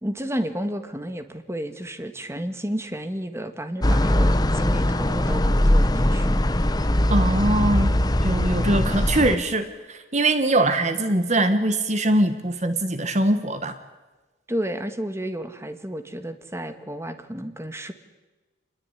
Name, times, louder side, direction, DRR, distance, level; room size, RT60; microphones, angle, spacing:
voice 1, 0.0-6.4 14.5-17.9, equal, 15° right, 9 dB, 1.6 m, -31 dB
sound 1, 3.8-9.4, left 1 dB, 20° left, 0.9 m, -21 dB
voice 2, 7.1-7.9 8.2-13.8, right 1 dB, 35° right, 10 dB, 1.4 m, -22 dB
27.5 x 21.0 x 9.9 m, 1.2 s
head